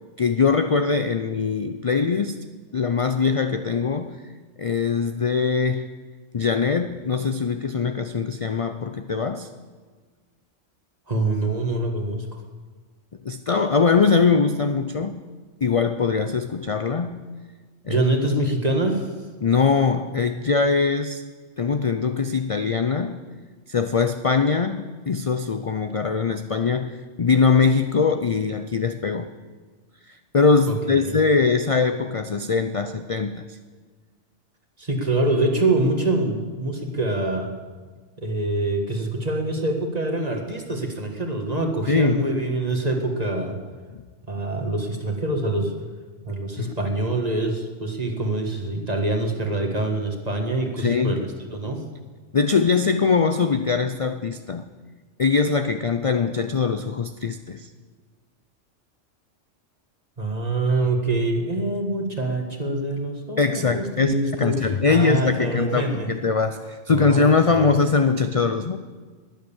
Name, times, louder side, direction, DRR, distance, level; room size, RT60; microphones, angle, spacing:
voice 1, 0.2-2.4 2.7-4.2 4.6-5.9 6.3-9.5 13.2-15.2 15.6-17.3 17.8-18.0 19.4-21.2 21.6-23.2 23.7-29.3 30.1-33.6 41.9-42.2 43.9-44.0 46.6-46.7 50.8-51.2 52.3-54.7 55.2-57.7 63.4-68.8, left 5 dB, 45° left, 9 dB, 0.4 m, -22 dB
voice 2, 11.1-12.3 17.9-19.1 30.7-31.2 34.8-37.5 38.2-43.6 44.3-45.7 46.3-51.8 60.2-66.1 66.9-67.7, right 2 dB, 30° right, 3 dB, 1.9 m, -25 dB
21.0 x 8.0 x 7.2 m, 1.5 s
omnidirectional pair, 1.3 m